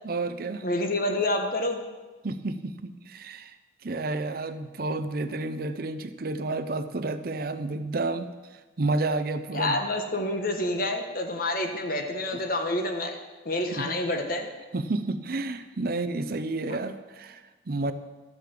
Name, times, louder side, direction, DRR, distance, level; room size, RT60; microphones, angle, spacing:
voice 1, 0.0-0.7 2.2-3.6 3.8-9.8 12.3-12.4 13.7-14.0 14.7-17.9, right 2 dB, 50° right, 10 dB, 0.6 m, -31 dB
voice 2, 0.6-1.8 9.5-13.2 13.4-14.5, left 1 dB, 50° left, 5 dB, 1.3 m, -28 dB
13.0 x 5.8 x 7.5 m, 1.2 s
head